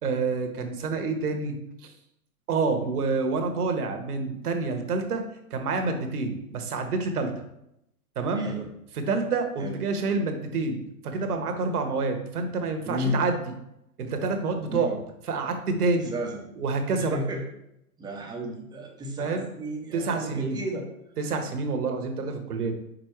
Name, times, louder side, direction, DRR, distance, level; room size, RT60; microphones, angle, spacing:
voice 1, 0.0-1.5 1.8-1.9 2.5-5.2 5.5-7.3 8.2-8.5 9.0-13.4 14.0-15.0 15.3-16.1 16.6-17.2 19.2-19.4 19.9-20.6 21.2-22.7, right 4 dB, 75° right, 5 dB, 1.3 m, -28 dB
voice 2, 8.3-8.7 9.6-9.8 12.8-13.2 14.7-15.0 16.1-16.4 17.0-17.5 18.0-20.9, equal, 10° right, 1 dB, 0.8 m, -32 dB
5.3 x 4.1 x 4.6 m, 0.81 s
hypercardioid pair, 130°, 45 cm